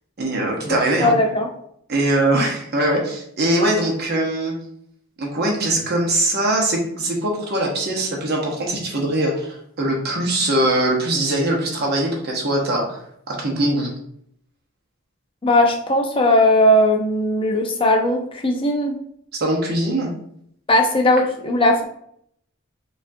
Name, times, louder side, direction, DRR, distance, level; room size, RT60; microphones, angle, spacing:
voice 1, 0.2-1.1 1.9-4.5 5.2-13.9 19.3-20.1, right 1 dB, 45° right, 0 dB, 0.8 m, -22 dB
voice 2, 0.7-1.5 15.4-19.0 20.7-21.8, left 1 dB, 25° left, 3 dB, 0.4 m, -18 dB
5.0 x 2.4 x 2.6 m, 0.70 s
head